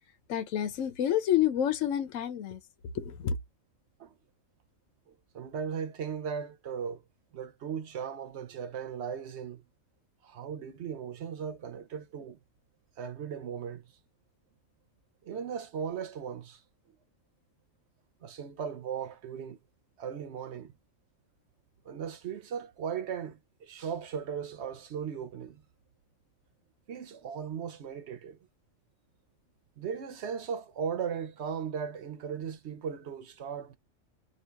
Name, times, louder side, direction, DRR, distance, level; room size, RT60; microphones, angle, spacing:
voice 1, 0.3-2.6 2.9-3.3, left 10 dB, 80° left, 1.1 m, -28 dB
voice 2, 5.1-7.0 7.3-9.6 10.2-12.4 13.0-13.8 15.2-16.6 18.2-19.6 20.0-20.7 21.8-25.6 26.9-28.4 29.8-33.7, right 7 dB, 60° right, 0.9 m, -37 dB
2.8 x 2.8 x 4.4 m
omnidirectional pair, 1.3 m